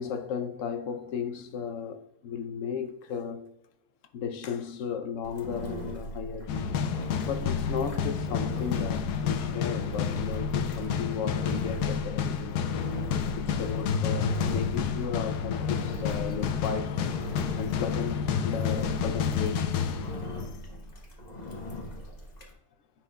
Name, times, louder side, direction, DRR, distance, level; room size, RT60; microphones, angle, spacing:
voice 1, 0.0-3.5 4.1-6.8 7.3-12.6 13.3-17.0 17.5-19.9 20.4-20.5, left 7 dB, 65° left, 0.9 m, -35 dB
Engine, 5.2-22.5, left 1 dB, 30° left, 1.0 m, -40 dB
sound 1, 6.5-20.7, left 7 dB, 90° left, 1.2 m, -30 dB
10.0 x 4.4 x 2.3 m
omnidirectional pair, 1.7 m